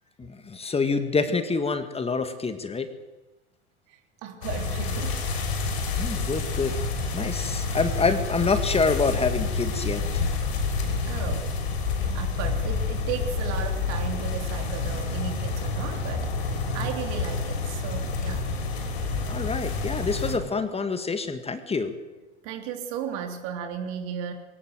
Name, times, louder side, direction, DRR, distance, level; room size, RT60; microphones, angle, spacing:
voice 1, 0.2-2.9 6.0-6.8 7.1-10.2 19.3-21.9, left 4 dB, 20° left, 9 dB, 2.0 m, -27 dB
voice 2, 3.9-5.2 11.0-11.6 12.0-18.5 22.4-24.3, right 7 dB, 55° right, 6 dB, 3.5 m, -35 dB
sound 1, 4.4-20.4, left 4 dB, 70° left, 6.5 m, -28 dB
20.5 x 18.5 x 8.0 m, 1.1 s
hypercardioid pair, 85°, 33 cm